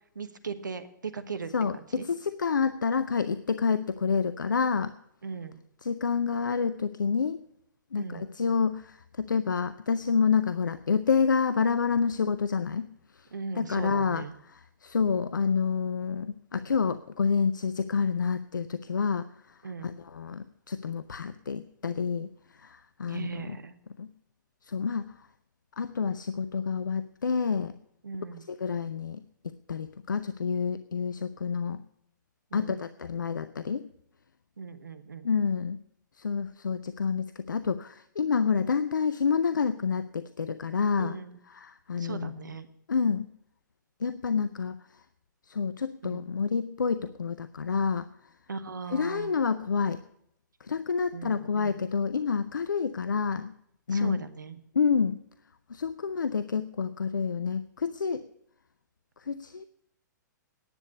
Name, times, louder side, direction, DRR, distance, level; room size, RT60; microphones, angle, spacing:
voice 1, 0.1-2.0 5.2-5.6 8.0-8.3 13.3-14.3 19.6-19.9 23.1-23.7 28.0-28.4 32.5-32.8 34.6-35.3 41.0-41.4 42.0-42.7 46.0-46.3 48.5-49.3 51.1-51.9 53.9-54.6, right 5 dB, 75° right, 11 dB, 1.2 m, -38 dB
voice 2, 1.5-4.9 5.8-7.4 7.9-12.9 13.2-13.3 13.6-23.6 24.0-24.1 24.7-25.1 25.8-27.7 28.5-31.8 32.5-33.9 35.2-35.8 36.2-41.2 41.5-42.3 42.9-43.3 44.0-44.8 45.5-48.1 48.9-50.0 50.6-53.5 53.9-54.2 54.7-55.2 55.7-58.3 59.2-59.6, left 5 dB, 75° left, 13 dB, 0.6 m, -28 dB
10.5 x 8.4 x 8.3 m, 0.74 s
figure-of-eight pair, 115°, 10 cm